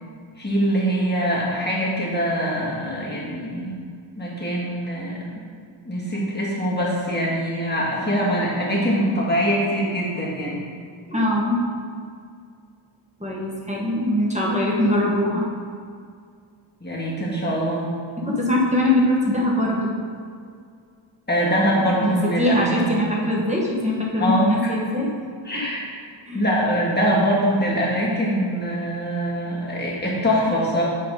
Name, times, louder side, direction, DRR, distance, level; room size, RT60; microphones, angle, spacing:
voice 1, 0.4-3.8 4.2-5.2 5.8-10.6 16.8-17.9 21.3-23.2 24.2-24.5 25.4-25.8 26.3-30.8, equal, 20° left, -5 dB, 1.7 m, -23 dB
voice 2, 11.1-11.6 13.2-15.4 18.2-19.9 22.0-25.1 25.5-25.6 26.3-26.4, left 1 dB, 15° right, -4 dB, 1.2 m, -22 dB
7.5 x 4.9 x 3.7 m, 2.2 s
wide cardioid pair, 65°, 48 cm